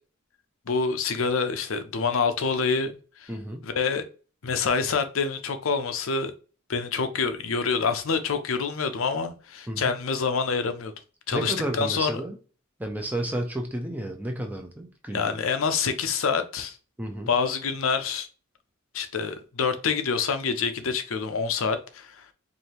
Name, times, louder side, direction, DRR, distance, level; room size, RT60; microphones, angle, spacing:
voice 1, 0.7-2.9 3.2-3.3 3.6-4.0 4.4-6.3 6.7-10.9 11.3-12.2 15.1-16.8 17.3-18.3 18.9-22.3, left 5 dB, 65° left, 0.6 m, -26 dB
voice 2, 3.3-3.6 9.7-9.9 11.3-12.4 12.8-15.3 17.0-17.3, right 1 dB, 5° right, 0.6 m, -32 dB
4.8 x 2.7 x 2.9 m
head